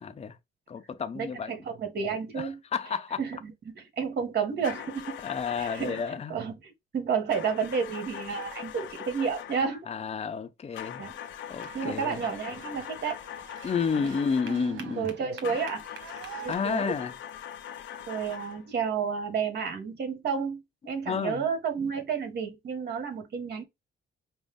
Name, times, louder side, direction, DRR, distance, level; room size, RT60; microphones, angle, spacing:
voice 1, 0.0-0.4 0.7-1.5 2.3-3.2 5.2-6.4 9.9-11.0 11.5-12.2 13.6-15.1 16.5-17.2 21.1-21.5, left 6 dB, 30° left, 0.6 m, -31 dB
voice 2, 1.1-2.6 3.2-5.2 5.6-6.0 6.3-9.8 11.0-11.1 11.7-13.2 14.0-14.2 14.5-15.8 16.4-16.9 18.1-23.6, right 6 dB, 55° right, 1.5 m, -31 dB
sound 1, 4.6-6.2 7.3-9.8 10.7-14.7 15.4-18.7, left 10 dB, 70° left, 0.6 m, -41 dB
sound 2, 11.6-16.6, right 7 dB, 75° right, 1.1 m, -47 dB
5.2 x 2.0 x 3.5 m
cardioid pair, 90°, 20 cm